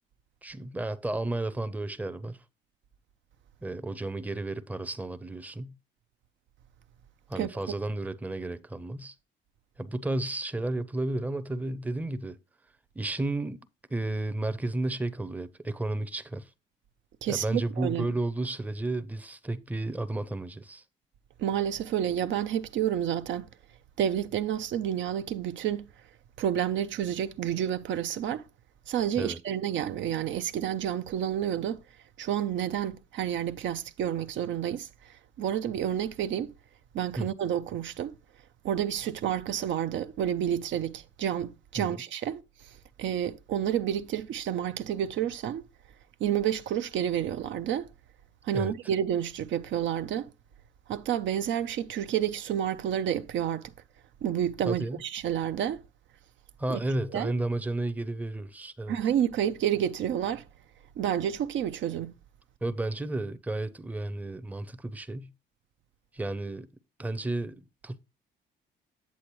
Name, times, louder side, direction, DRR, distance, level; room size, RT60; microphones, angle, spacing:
voice 1, 0.4-2.4 3.6-5.8 7.3-9.2 9.8-12.4 12.9-13.6 13.9-16.5 17.3-20.8 29.2-29.4 37.2-37.3 41.8-42.0 48.5-48.7 54.7-55.0 56.6-59.0 62.6-65.3 66.1-66.7 67.0-68.0, right 2 dB, 10° right, 0.6 m, -32 dB
voice 2, 17.2-18.1 21.4-23.5 24.0-25.9 26.4-28.4 28.9-31.8 32.2-36.5 36.9-38.2 38.6-42.4 43.0-45.6 46.2-47.9 48.4-50.3 50.9-53.7 54.2-55.8 56.7-56.8 57.1-57.3 58.9-60.4 61.0-62.1, right 10 dB, 70° right, 0.5 m, -29 dB
8.3 x 7.7 x 3.0 m
cardioid pair, 90°, 20 cm